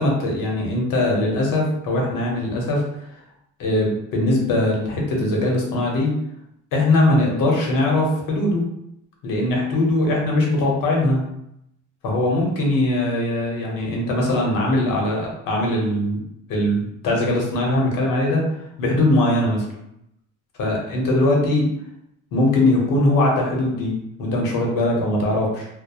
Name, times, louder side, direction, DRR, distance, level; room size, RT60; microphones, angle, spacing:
voice 1, 0.0-2.8 3.6-6.1 6.7-8.6 9.2-11.2 12.0-16.2 16.5-18.4 18.8-19.7 20.6-21.7 22.3-25.7, left 1 dB, 80° left, -1 dB, 0.8 m, -21 dB
2.8 x 2.0 x 2.3 m, 0.79 s
cardioid pair, 180°, 32 cm